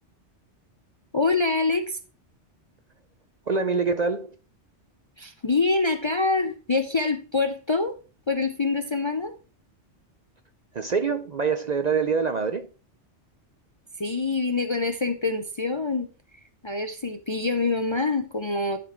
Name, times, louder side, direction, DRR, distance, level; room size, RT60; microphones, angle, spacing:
voice 1, 1.1-2.0 5.2-8.0 8.3-9.3 14.0-16.1 16.6-18.8, left 3 dB, 35° left, 0.5 m, -25 dB
voice 2, 3.5-4.3 10.7-12.7, right 5 dB, 50° right, 0.6 m, -25 dB
11.5 x 4.3 x 4.4 m
omnidirectional pair, 1.2 m